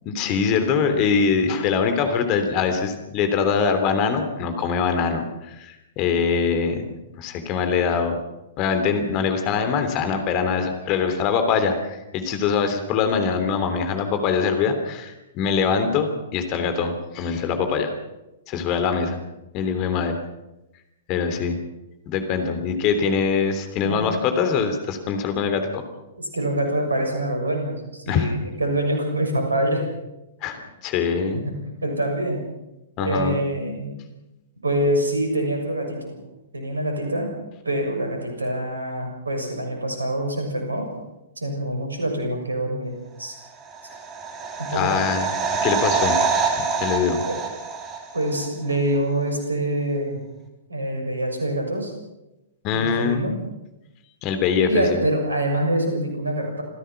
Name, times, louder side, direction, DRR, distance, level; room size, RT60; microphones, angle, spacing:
voice 1, 0.0-6.8 7.2-8.2 8.6-17.9 18.5-19.2 19.5-20.2 21.1-21.6 22.1-25.8 28.1-28.3 30.4-31.4 33.0-33.4 44.7-45.3 45.6-46.2 46.6-47.2 52.6-53.2 54.2-55.0, left 6 dB, 35° left, 7 dB, 3.2 m, -23 dB
voice 2, 23.8-24.2 26.2-28.3 28.6-29.8 31.3-31.4 31.8-32.4 33.0-33.9 34.6-36.2 36.5-37.3 37.6-40.9 41.4-42.9 43.2-43.3 44.6-45.0 47.3-47.4 48.1-50.2 50.7-51.9 52.7-53.4 54.6-56.6, right 1 dB, 75° right, 3 dB, 6.9 m, -25 dB
sound 1, 43.6-48.5 48.7-48.8, right 5 dB, 25° right, 3.3 m, -25 dB
27.0 x 16.0 x 6.0 m, 0.95 s
figure-of-eight pair, 110°, 0 cm